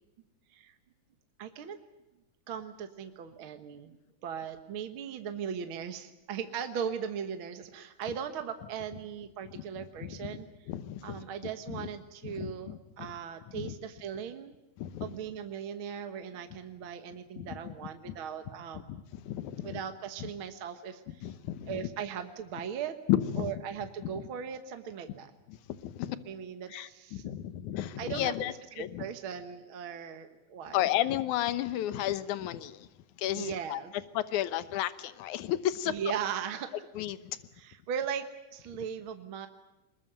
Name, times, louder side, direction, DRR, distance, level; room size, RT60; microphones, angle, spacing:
voice 1, 1.4-1.8 2.5-4.0 4.2-10.5 11.0-14.5 15.0-18.9 19.6-21.3 21.7-23.0 23.4-25.3 26.3-27.3 28.0-30.8 33.3-33.9 35.8-36.7 37.6-39.5, right 7 dB, 55° right, 7 dB, 1.7 m, -38 dB
voice 2, 9.6-10.4 10.7-11.2 11.7-11.9 12.2-13.1 13.5-13.7 14.8-15.1 17.4-17.7 18.1-18.2 18.9-19.8 20.2-20.3 21.2-21.8 23.1-23.5 24.0-24.1 25.5-26.2 26.7-29.1 30.7-32.9 33.2-33.8 34.1-35.9 37.0-37.2, left 12 dB, 75° left, 13 dB, 2.4 m, -33 dB
22.5 x 21.0 x 8.9 m, 0.99 s
omnidirectional pair, 3.5 m